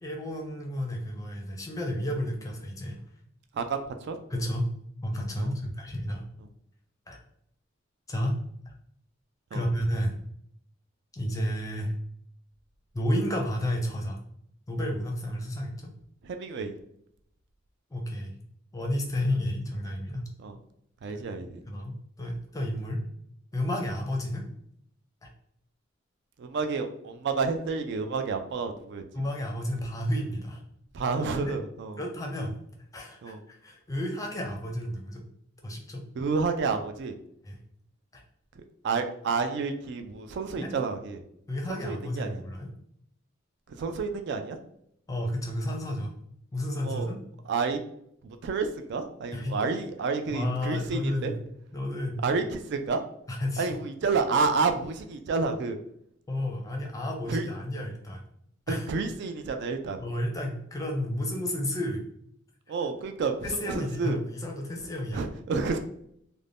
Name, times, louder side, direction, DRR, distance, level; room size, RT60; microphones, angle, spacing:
voice 1, 0.0-3.0 4.3-4.7 5.0-6.2 7.1-7.2 8.1-8.4 8.7-8.8 9.5-10.2 11.1-12.0 12.9-14.2 14.7-15.9 17.9-18.3 18.7-20.3 21.3-21.4 21.7-23.0 23.5-24.5 25.2-25.3 29.1-30.6 31.2-31.6 32.0-32.6 32.9-35.2 35.6-36.0 37.4-37.6 38.1-38.2 40.6-40.7 41.5-42.7 45.1-46.1 46.5-47.2 49.3-49.6 50.3-51.4 51.7-52.2 53.3-53.7 56.3-58.2 58.7-58.8 60.0-62.0 63.4-65.3, left 1 dB, 15° left, 1 dB, 0.5 m, -31 dB
voice 2, 3.5-4.2 5.4-5.5 9.5-9.7 16.2-16.7 20.4-20.6 21.0-21.6 26.4-29.2 30.9-32.0 33.2-33.4 36.1-37.2 38.6-41.2 41.7-42.4 43.7-44.6 46.8-47.1 47.5-47.8 48.2-51.3 52.2-53.0 53.6-55.8 57.3-57.5 58.7-60.0 62.7-64.2 64.8-65.8, right 4 dB, 60° right, 7 dB, 0.3 m, -30 dB
2.5 x 2.1 x 3.3 m, 0.71 s
head